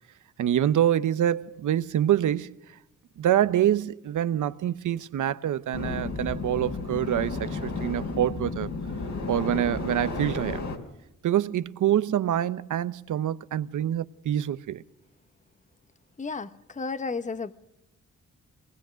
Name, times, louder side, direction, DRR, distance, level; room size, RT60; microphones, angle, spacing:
voice 1, 0.4-2.6 3.2-8.7 9.3-10.6 11.2-14.8, right 11 dB, 80° right, 0.9 m, -26 dB
sound 1, 5.7-10.8, left 3 dB, 65° left, 3.7 m, -32 dB
voice 2, 16.2-17.5, left 4 dB, 25° left, 0.9 m, -33 dB
25.0 x 19.0 x 6.3 m
cardioid pair, 85°, 30 cm